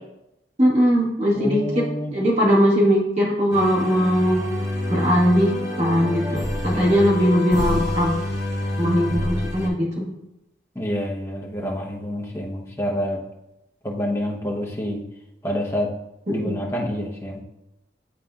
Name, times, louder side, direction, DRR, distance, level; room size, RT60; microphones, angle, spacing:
voice 1, 0.6-4.4 4.9-5.5 5.8-8.1 8.8-10.1 16.3-16.5, equal, 35° right, -4 dB, 1.8 m, -20 dB
voice 2, 1.3-2.1 6.7-7.0 10.7-13.2 13.8-15.0 15.4-15.9 16.3-17.4, equal, 15° left, -3 dB, 1.0 m, -27 dB
sound 1, 3.5-9.7, left 1 dB, 15° right, 1.1 m, -27 dB
10.5 x 4.1 x 2.5 m, 0.88 s
head